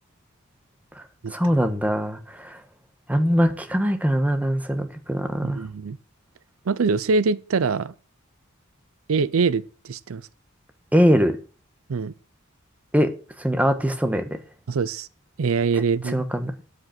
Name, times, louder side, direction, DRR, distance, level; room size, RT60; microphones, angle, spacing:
voice 1, 1.3-2.6 3.1-5.6 10.9-11.4 12.9-13.1 13.4-14.2 16.1-16.5, equal, 5° right, 1.2 m, -22 dB
voice 2, 5.4-6.0 6.7-7.9 9.1-10.2 11.9-12.1 14.7-15.1 15.4-16.2, right 4 dB, 70° right, 0.5 m, -23 dB
9.8 x 7.9 x 5.9 m
head